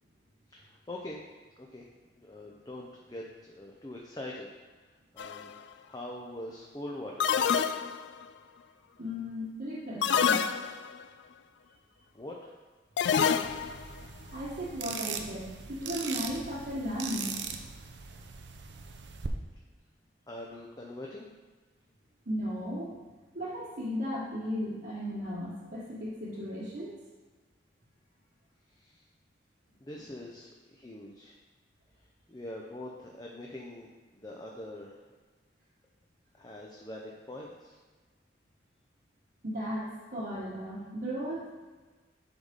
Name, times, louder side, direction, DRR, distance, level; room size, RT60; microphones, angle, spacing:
voice 1, 0.5-1.2 1.6-1.8 2.2-4.5 4.8-5.5 5.8-7.6 12.1-12.5 20.3-21.3 28.7-29.1 29.8-31.4 32.3-33.9 34.1-35.0 36.3-37.8, left 1 dB, 20° left, -2 dB, 0.6 m, -43 dB
sound 1, 5.2-5.5 7.2-8.2 10.0-11.0 13.0-13.9, left 7 dB, 70° left, 0.3 m, -27 dB
voice 2, 9.0-10.5 14.3-17.4 22.2-22.9 23.3-27.0 39.4-41.5, equal, 55° right, -9 dB, 1.3 m, -35 dB
sound 2, 13.4-19.3, right 6 dB, 70° right, 0.6 m, -40 dB
8.0 x 4.1 x 5.2 m, 1.3 s
head